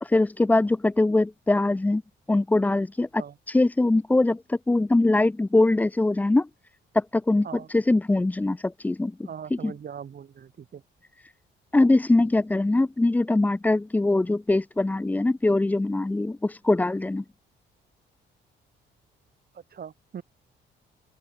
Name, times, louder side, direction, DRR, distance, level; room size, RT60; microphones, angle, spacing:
voice 1, 0.0-2.0 2.3-6.5 6.9-9.1 9.5-9.7 11.7-17.2, left 2 dB, 10° left, 0.4 m, -22 dB
voice 2, 9.2-10.8 19.7-20.2, right 8 dB, 50° right, 2.6 m, -40 dB
open air
cardioid pair, 90°, 20 cm